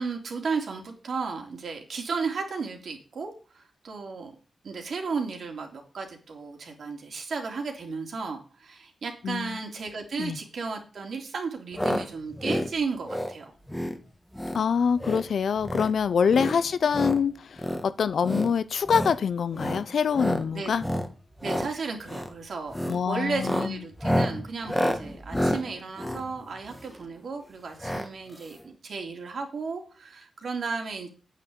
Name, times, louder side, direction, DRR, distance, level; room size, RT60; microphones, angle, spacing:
voice 1, 0.0-4.3 4.6-13.5 16.3-16.6 20.5-20.7 21.4-31.1, right 4 dB, 60° right, 3.2 m, -34 dB
voice 2, 9.2-9.6 10.2-10.4 14.5-20.8 22.9-23.8, left 6 dB, 70° left, 0.7 m, -25 dB
sound 1, 11.7-12.0 12.3-12.7 13.0-13.3 13.7-14.0 14.3-14.6 14.9-15.3 15.6-15.9 16.3-17.2 17.6-17.8 18.2-18.5 18.9-19.2 19.5-19.8 20.1-20.4 20.8-21.1 21.4-21.7 22.1-22.3 22.7-23.0 23.3-27.0 27.8-28.1 28.4-28.5 28.6-28.7, equal, 5° left, 1.5 m, -29 dB
9.1 x 6.6 x 8.6 m
wide cardioid pair, 140°, 0 cm